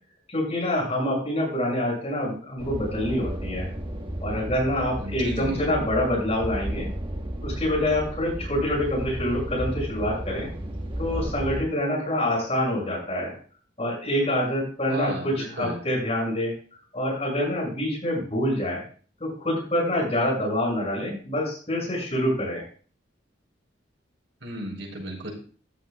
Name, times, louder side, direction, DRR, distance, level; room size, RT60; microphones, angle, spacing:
voice 1, 0.3-3.7 4.2-6.9 7.4-10.5 11.0-13.3 13.8-16.6 16.9-18.8 19.2-22.6, left 1 dB, 35° left, -2 dB, 6.4 m, -26 dB
sound 1, 2.6-11.6, right 1 dB, 25° right, 1.3 m, -33 dB
voice 2, 5.0-5.7 14.9-15.8 24.4-25.3, right 1 dB, 90° right, -1 dB, 5.3 m, -34 dB
14.0 x 11.5 x 2.3 m, 0.41 s
head